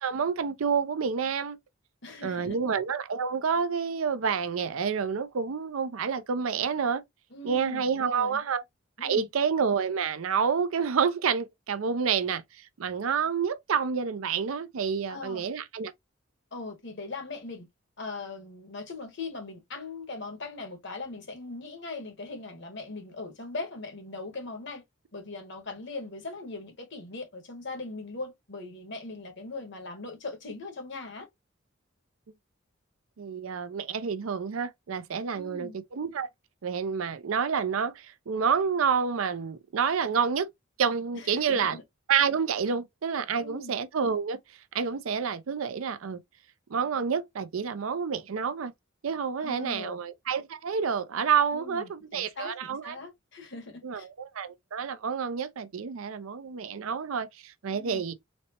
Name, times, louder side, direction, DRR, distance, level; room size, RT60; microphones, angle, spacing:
voice 1, 0.0-1.6 2.2-7.0 7.4-8.6 9.0-12.4 12.8-15.9 33.2-36.3 36.6-40.5 40.8-41.8 42.1-44.4 44.7-46.2 46.7-48.7 49.0-53.0 53.8-54.0 54.3-58.1, right 6 dB, 80° right, 0.5 m, -28 dB
voice 2, 2.0-2.6 7.3-8.4 9.0-9.3 15.1-15.4 16.5-17.7 18.0-24.8 25.1-31.3 35.3-35.7 41.1-41.8 43.4-43.7 49.4-50.0 51.5-54.1 57.7-58.0, left 3 dB, 60° left, 1.2 m, -40 dB
4.1 x 2.1 x 2.9 m
head